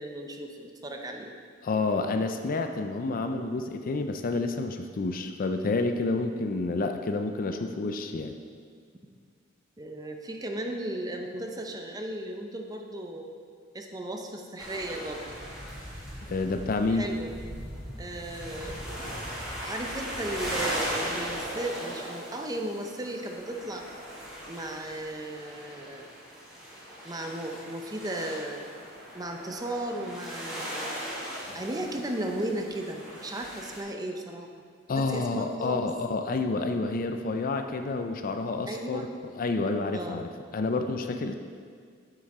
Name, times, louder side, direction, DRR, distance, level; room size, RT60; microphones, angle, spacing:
voice 1, 0.0-1.3 9.8-13.3 13.7-15.2 16.9-17.3 18.0-19.2 19.6-23.8 24.5-26.1 27.0-28.7 29.1-30.9 31.5-34.5 34.9-35.9 38.7-39.1 39.9-40.2, right 1 dB, 20° right, 3 dB, 0.6 m, -35 dB
voice 2, 1.6-8.4 16.3-17.0 31.5-31.6 34.9-39.1 39.4-41.3, left 3 dB, 45° left, 6 dB, 0.4 m, -29 dB
sound 1, 14.6-33.8, equal, 5° right, 2.0 m, -38 dB
8.0 x 6.1 x 4.2 m, 2.1 s
head